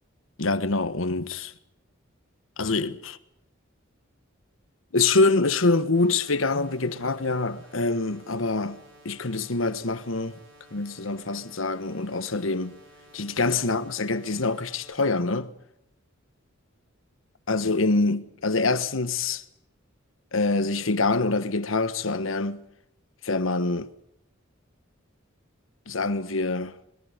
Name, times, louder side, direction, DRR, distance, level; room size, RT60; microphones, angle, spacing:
voice 1, 0.4-1.5 2.6-3.2 4.9-10.3 10.7-12.7 13.1-15.5 17.5-19.4 20.3-22.7 23.2-23.9 25.9-26.7, left 3 dB, 85° left, 1.3 m, -25 dB
sound 1, 5.9-14.9, equal, 65° right, 5.5 m, -54 dB
28.0 x 21.5 x 5.1 m
head